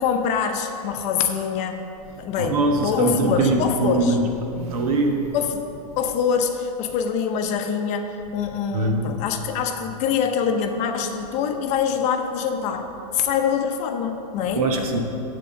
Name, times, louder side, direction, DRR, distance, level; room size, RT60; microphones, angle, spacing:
voice 1, 0.0-1.8 2.2-4.2 5.3-5.6 6.0-12.9 13.1-14.6, left 7 dB, 35° left, 4 dB, 0.7 m, -24 dB
voice 2, 2.4-4.2 4.5-5.3 8.7-9.0 14.5-15.0, right 3 dB, 65° right, 2 dB, 1.3 m, -22 dB
10.5 x 3.8 x 7.0 m, 2.9 s
hypercardioid pair, 135°, 20 cm